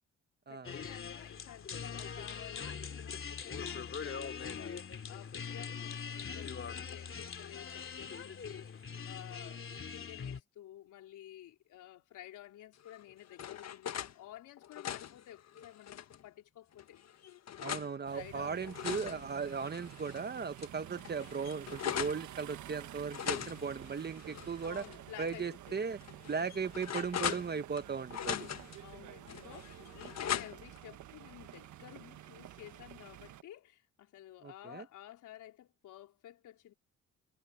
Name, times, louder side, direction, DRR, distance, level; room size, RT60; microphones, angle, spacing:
voice 1, 0.5-8.7 9.1-17.0 18.1-18.9 24.6-25.8 28.8-36.7, left 12 dB, 80° left, 4.3 m, -53 dB
sound 1, 0.6-10.4, left 6 dB, 45° left, 2.9 m, -42 dB
sound 2, 12.8-14.1 14.6-16.2 16.8-17.9 18.5-20.2 20.6-20.7 21.0-22.2 23.1-24.9 25.3-25.4 26.0-27.8 28.1-28.8 29.3-30.8, left 10 dB, 60° left, 1.7 m, -40 dB
voice 2, 17.6-24.8 25.2-26.0 26.3-28.5 34.4-34.8, right 5 dB, 35° right, 1.4 m, -37 dB
sound 3, 18.1-33.4, right 12 dB, 75° right, 1.4 m, -51 dB
cardioid pair, 90°, 30 cm